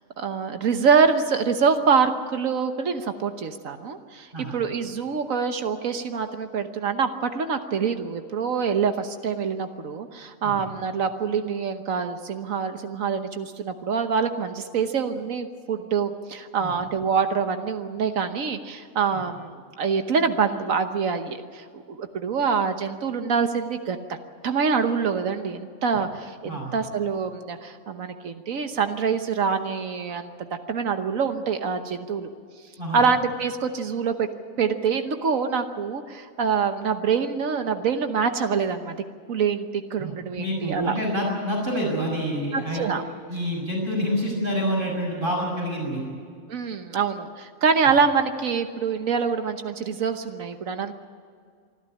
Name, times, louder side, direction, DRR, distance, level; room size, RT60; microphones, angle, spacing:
voice 1, 0.2-24.2 24.4-32.3 32.9-34.3 34.6-39.0 39.3-40.9 42.5-43.0 46.5-50.9, right 6 dB, 80° right, 8 dB, 1.5 m, -25 dB
voice 2, 26.4-26.8 32.8-33.0 40.0-42.9 43.3-46.0, equal, 40° right, -1 dB, 6.4 m, -27 dB
25.5 x 12.0 x 9.9 m, 2.2 s
omnidirectional pair, 1.4 m